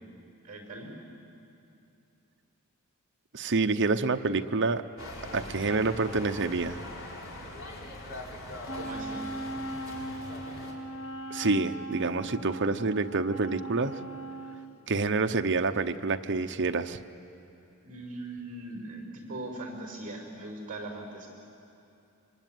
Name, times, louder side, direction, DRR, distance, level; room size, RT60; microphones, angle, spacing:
voice 1, 0.4-0.9 8.7-9.2 17.8-21.3, right 2 dB, 40° right, 2 dB, 5.1 m, -40 dB
voice 2, 3.3-4.8 5.3-6.8 11.3-14.0 14.9-17.0, right 3 dB, 55° right, 7 dB, 0.9 m, -27 dB
sound 1, 5.0-10.7, left 1 dB, 60° left, 4.4 m, -42 dB
Wind instrument woodwind instrument, 8.7-14.8, right 1 dB, 85° left, 1.9 m, -39 dB
25.5 x 25.0 x 9.3 m, 2.7 s
head